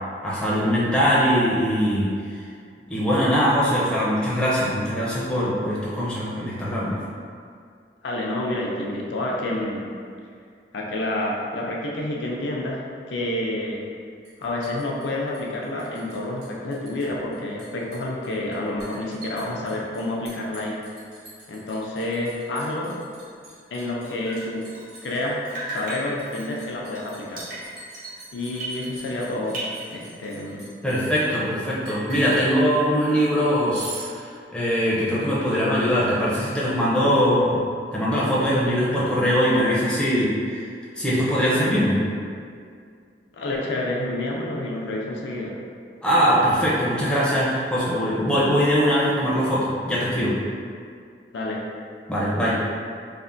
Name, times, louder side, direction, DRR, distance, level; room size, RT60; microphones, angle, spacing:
voice 1, 0.2-2.1 2.9-7.0 30.8-37.6 37.9-40.6 41.0-42.0 46.0-50.4 52.1-52.6, equal, 5° left, -8 dB, 0.5 m, -22 dB
voice 2, 8.0-9.8 10.7-12.8 13.1-13.8 14.4-20.8 21.5-23.0 23.7-24.7 25.0-27.4 28.3-29.6 29.9-30.6 43.3-45.6 51.3-51.6, left 1 dB, 80° left, -3 dB, 0.4 m, -29 dB
Liquid, 14.3-16.2 16.4-17.1 17.3-31.2 31.8-32.5 33.7-34.1, right 2 dB, 65° right, 1.1 m, -41 dB
Drip, 24.0-25.2 25.5-29.2 29.5-30.5, right 1 dB, 50° right, 0.7 m, -36 dB
3.3 x 2.1 x 2.5 m, 2.2 s
head